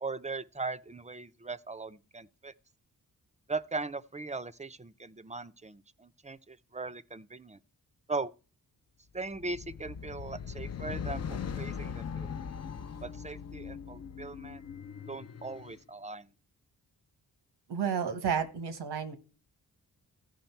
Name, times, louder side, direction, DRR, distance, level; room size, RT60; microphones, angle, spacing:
voice 1, 0.0-2.5 3.5-7.6 8.1-8.3 9.1-11.2 11.6-12.3 13.0-14.6 15.1-16.3, right 3 dB, 20° right, 0.5 m, -39 dB
sound 1, 9.3-15.8, left 7 dB, 40° left, 0.6 m, -40 dB
voice 2, 17.7-19.2, right 7 dB, 85° right, 1.2 m, -31 dB
15.0 x 5.1 x 4.5 m
cardioid pair, 50°, 39 cm